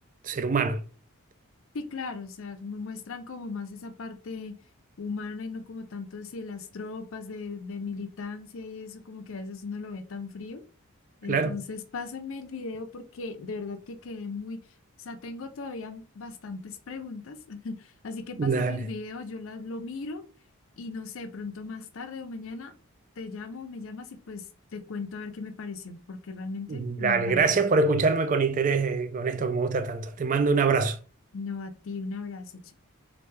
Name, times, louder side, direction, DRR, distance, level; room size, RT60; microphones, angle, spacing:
voice 1, 0.2-0.8 11.3-11.5 18.4-18.9 26.7-31.0, right 4 dB, 35° right, 0.3 m, -24 dB
voice 2, 1.7-4.5 5.0-10.6 11.2-14.6 15.0-20.2 20.8-22.7 23.2-24.4 24.7-27.6 31.3-32.7, left 4 dB, 65° left, 0.5 m, -37 dB
3.2 x 2.6 x 3.2 m
head